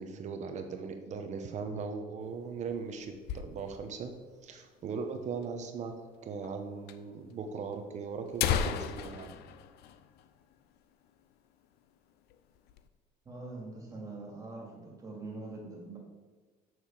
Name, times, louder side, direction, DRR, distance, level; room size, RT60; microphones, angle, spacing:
voice 1, 0.0-4.1 4.4-6.0 6.2-9.3, right 5 dB, 45° right, 6 dB, 1.0 m, -39 dB
sound 1, 2.2-4.0 4.3-4.4 4.6-4.7 5.4-5.5 6.4-6.6 6.9-7.0 7.7-7.8 8.2-10.8 11.1-11.2 11.6-11.9 12.3-12.9, left 8 dB, 75° left, 0.6 m, -35 dB
voice 2, 13.2-16.0, right 2 dB, 20° right, -1 dB, 2.6 m, -43 dB
6.8 x 6.2 x 7.4 m, 1.4 s
cardioid pair, 155°, 17 cm